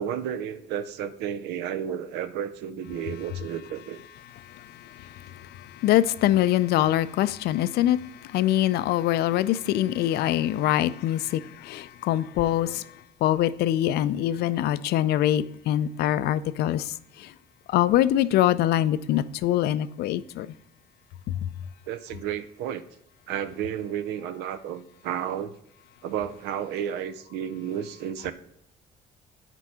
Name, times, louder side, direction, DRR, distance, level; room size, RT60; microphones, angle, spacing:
voice 1, 0.0-4.0 21.9-22.8 23.3-25.5 26.0-28.3, right 9 dB, 85° right, 0.6 m, -32 dB
voice 2, 5.8-8.0 8.3-12.8 13.2-16.9 17.7-20.5, left 13 dB, 70° left, 0.4 m, -23 dB
6.1 x 4.6 x 5.5 m
cardioid pair, 110°, 17 cm